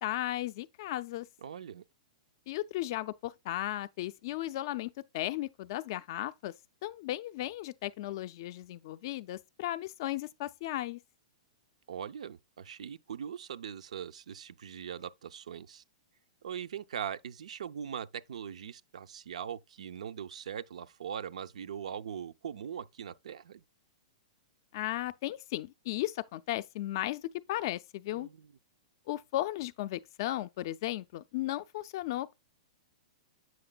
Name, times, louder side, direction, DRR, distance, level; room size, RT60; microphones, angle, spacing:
voice 1, 0.0-1.3 2.5-6.5 6.8-11.0 24.7-28.3 29.1-32.3, left 15 dB, 35° left, 0.3 m, -35 dB
voice 2, 1.4-1.8 11.9-15.8 16.4-23.6 28.1-28.5, right 8 dB, 90° right, 0.5 m, -41 dB
7.7 x 5.8 x 2.2 m
hypercardioid pair, 170°, 4 cm